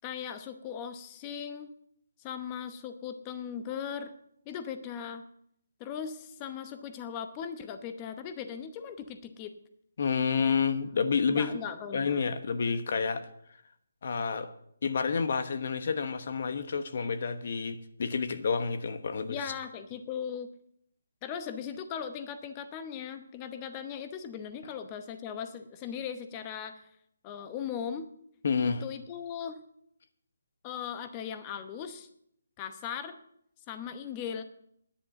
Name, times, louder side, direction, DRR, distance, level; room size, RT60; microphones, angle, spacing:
voice 1, 0.0-1.7 2.2-4.1 4.4-5.2 5.8-9.5 11.3-12.2 19.3-20.5 21.2-26.9 27.2-28.1 28.6-29.6 30.6-32.1 32.6-33.2 33.7-34.4, left 8 dB, 20° left, 9 dB, 0.9 m, -38 dB
voice 2, 10.0-11.6 11.9-13.2 14.0-14.5 14.8-19.4 28.4-28.8, left 5 dB, 50° left, 10 dB, 1.1 m, -29 dB
10.5 x 8.4 x 8.0 m, 0.71 s
hypercardioid pair, 165°, 0 cm